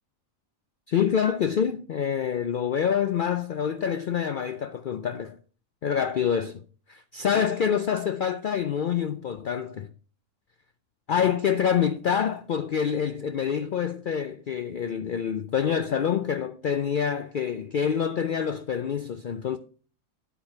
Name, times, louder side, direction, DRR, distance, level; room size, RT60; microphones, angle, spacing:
voice 1, 0.9-5.4 5.8-6.6 6.9-9.9 11.1-19.6, left 8 dB, 80° left, 0.4 m, -26 dB
9.0 x 8.8 x 3.2 m
omnidirectional pair, 1.4 m